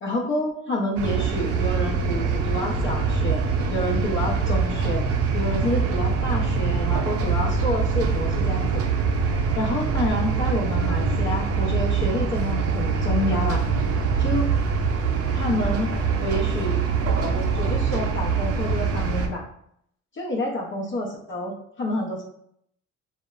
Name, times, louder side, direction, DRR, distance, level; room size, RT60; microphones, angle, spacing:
voice 1, 0.0-3.4 3.7-5.0 5.3-8.8 9.5-13.6 14.2-14.5 15.3-15.9 16.2-16.9 17.1-19.4 20.1-22.2, left 1 dB, 40° left, -2 dB, 0.6 m, -28 dB
sound 1, 1.0-19.3, right 5 dB, 55° right, 0.4 m, -24 dB
2.8 x 2.0 x 2.3 m, 0.72 s
cardioid pair, 90°, 30 cm